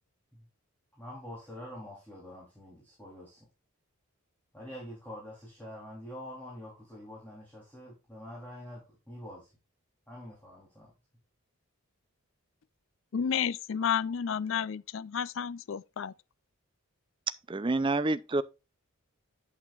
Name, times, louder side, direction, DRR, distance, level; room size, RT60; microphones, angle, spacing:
voice 1, 1.0-3.4 4.5-9.5 10.1-10.9, equal, 10° left, 3.3 m, -46 dB
voice 2, 13.1-16.1, left 7 dB, 60° left, 0.4 m, -31 dB
voice 3, 17.5-18.4, right 2 dB, 20° right, 0.4 m, -28 dB
8.5 x 8.5 x 2.4 m
head